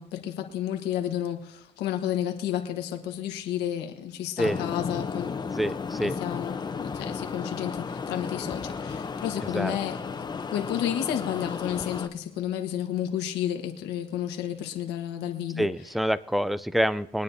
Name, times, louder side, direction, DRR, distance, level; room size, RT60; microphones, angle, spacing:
voice 1, 0.0-5.3 6.0-10.0 10.5-15.7, left 11 dB, 85° left, 5 dB, 1.4 m, -31 dB
sound 1, 4.4-12.1, left 5 dB, 25° left, 0.7 m, -34 dB
voice 2, 5.6-6.2 9.4-9.8 15.6-17.2, equal, ahead, 16 dB, 0.4 m, -27 dB
23.0 x 9.6 x 2.7 m, 0.73 s
cardioid pair, 110°, 17 cm